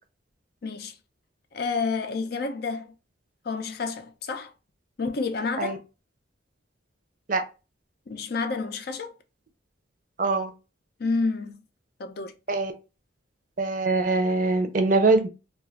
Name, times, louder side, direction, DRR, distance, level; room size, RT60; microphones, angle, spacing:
voice 1, 0.6-0.9 1.5-2.9 3.4-4.5 5.0-5.8 8.1-9.1 11.0-11.6 12.0-12.3, left 4 dB, 55° left, 0.4 m, -29 dB
voice 2, 10.2-10.5 12.5-12.7 13.6-15.3, right 3 dB, 45° right, 0.5 m, -23 dB
2.4 x 2.3 x 3.9 m
head